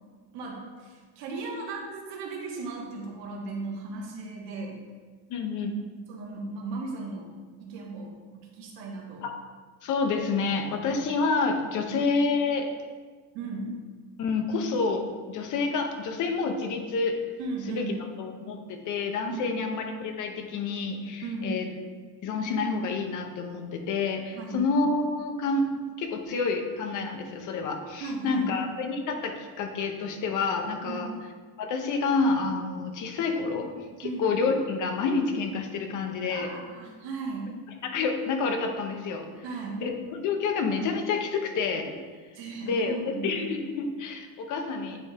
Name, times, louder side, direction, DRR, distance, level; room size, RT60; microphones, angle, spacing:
voice 1, 0.3-4.8 6.1-7.3 7.6-9.3 11.7-12.0 13.3-13.8 17.4-17.9 19.3-19.6 21.2-21.6 24.3-24.7 28.0-28.5 30.8-31.0 34.0-34.3 36.3-37.6 39.4-39.8 42.3-43.5, right 3 dB, 85° right, -1 dB, 1.5 m, -36 dB
voice 2, 5.3-5.8 9.2-9.3 9.8-12.7 14.2-17.2 17.7-17.8 18.2-21.7 22.2-25.6 26.0-31.1 31.6-33.7 34.0-36.5 37.8-39.3 39.8-41.9 42.6-43.0 43.2-45.0, left 4 dB, 45° left, 4 dB, 0.7 m, -28 dB
9.1 x 3.5 x 3.4 m, 1.5 s
cardioid pair, 175°, 42 cm